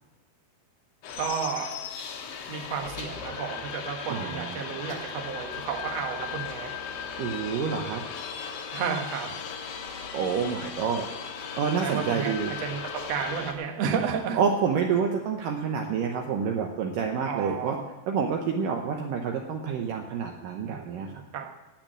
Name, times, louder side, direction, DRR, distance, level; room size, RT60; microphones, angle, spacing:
sound 1, 1.0-13.5, left 7 dB, 80° left, 3.3 m, -37 dB
voice 1, 1.2-1.7 2.5-6.7 8.7-9.3 11.8-12.8 13.1-14.4 17.3-17.8 20.7-21.5, right 7 dB, 55° right, 2 dB, 2.1 m, -32 dB
voice 2, 4.1-4.9 7.2-8.0 10.1-11.1 11.3-12.6 14.3-17.8 18.1-21.1, right 6 dB, 70° right, 2 dB, 2.3 m, -28 dB
17.5 x 5.9 x 8.8 m, 1.2 s
omnidirectional pair, 4.5 m